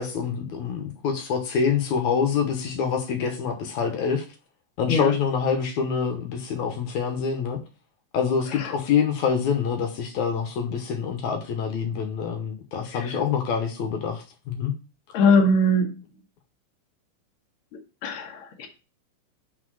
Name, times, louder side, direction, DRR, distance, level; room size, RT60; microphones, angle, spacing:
voice 1, 0.0-4.2 4.8-7.6 8.1-14.7, left 6 dB, 70° left, 4 dB, 2.2 m, -26 dB
voice 2, 15.1-16.0 18.0-18.7, left 2 dB, 50° left, 2 dB, 1.7 m, -21 dB
5.5 x 4.1 x 6.1 m, 0.33 s
omnidirectional pair, 3.6 m